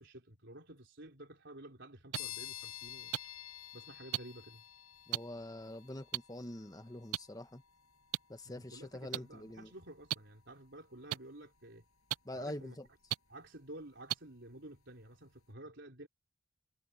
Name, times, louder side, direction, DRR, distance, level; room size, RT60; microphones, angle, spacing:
voice 1, 0.0-3.1 3.7-4.6 8.4-11.8 12.3-12.8 13.3-16.1, right 1 dB, 55° right, 4.6 m, -52 dB
sound 1, 2.1-14.7, left 13 dB, 80° left, 7.0 m, -53 dB
sound 2, 2.1-2.2 3.1-3.2 4.1-4.2 5.1-5.2 6.1-6.2 7.1-7.2 8.1-8.2 9.1-9.2 10.1-10.2 11.1-11.2 12.1-12.2 13.1-13.2 14.1-14.2 15.1-15.2, right 15 dB, 80° right, 0.3 m, -34 dB
voice 2, 5.1-7.6 8.3-9.7 12.2-12.8, left 1 dB, 15° left, 1.1 m, -45 dB
head